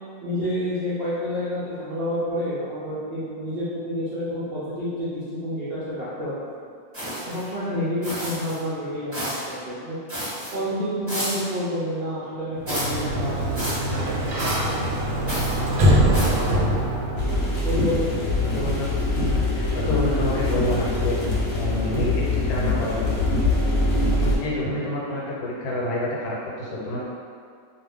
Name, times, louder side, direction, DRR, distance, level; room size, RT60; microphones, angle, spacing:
voice 1, 0.2-6.3 7.3-10.0 10.5-14.4 14.8-15.0 15.7-16.5 17.6-18.2, equal, 65° right, -11 dB, 0.6 m, -29 dB
sound 1, 6.9-7.5 8.0-8.6 9.1-9.5 10.1-10.5 11.1-11.5 12.7-13.0 13.6-13.9 14.4-14.7 15.3-15.6 16.1-16.5, equal, 10° right, 0.7 m, -30 dB
Sliding door, 12.6-17.4, equal, 85° right, 1.1 m, -23 dB
sound 2, 17.2-24.4, left 2 dB, 55° left, 0.8 m, -23 dB
voice 2, 18.4-18.9 19.2-21.2 21.5-23.3 24.2-27.0, left 1 dB, 80° left, -5 dB, 1.2 m, -28 dB
2.5 x 2.4 x 3.4 m, 2.2 s
omnidirectional pair, 1.6 m